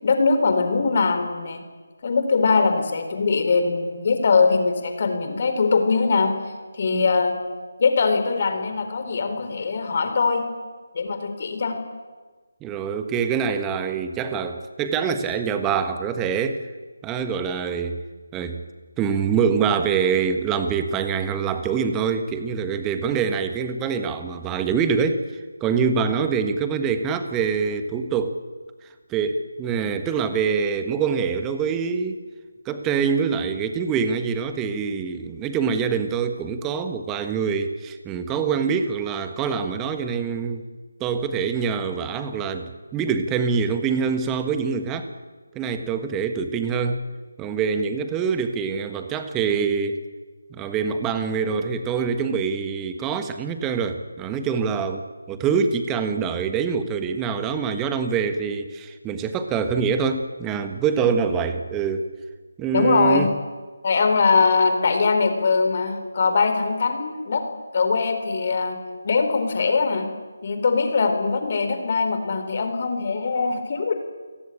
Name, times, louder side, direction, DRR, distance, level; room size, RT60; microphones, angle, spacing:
voice 1, 0.0-1.6 2.0-6.3 6.7-7.3 7.8-10.4 10.9-11.7 62.7-63.3 63.8-67.4 67.7-68.8 69.0-70.1 70.4-73.9, left 4 dB, 40° left, 7 dB, 4.3 m, -21 dB
voice 2, 12.6-16.6 17.0-18.0 18.3-18.6 19.0-25.3 25.6-28.4 29.1-32.2 32.6-40.6 41.0-45.1 45.5-47.0 47.4-50.0 50.5-62.1 62.6-63.3, right 6 dB, 10° right, 8 dB, 1.5 m, -25 dB
29.0 x 18.0 x 8.7 m, 1.4 s
figure-of-eight pair, 155°, 0 cm